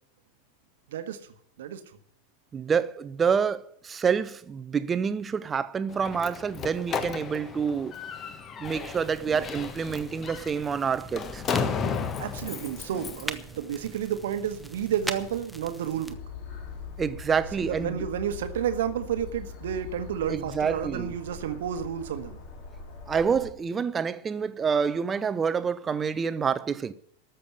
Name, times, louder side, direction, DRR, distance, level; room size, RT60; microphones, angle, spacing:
voice 1, 0.9-1.3 1.6-1.8 12.2-16.2 17.6-22.4, right 9 dB, 60° right, 1.3 m, -31 dB
voice 2, 2.5-7.9 8.6-11.4 17.0-18.1 20.3-21.1 23.1-26.9, right 6 dB, 20° right, 0.7 m, -27 dB
Slam, 5.9-13.3, left 6 dB, 25° left, 1.2 m, -34 dB
sound 1, 8.6-16.2, equal, ahead, 1.0 m, -42 dB
sound 2, 16.1-23.5, left 4 dB, 45° left, 2.9 m, -42 dB
13.5 x 6.8 x 9.4 m
figure-of-eight pair, 90°, 0 cm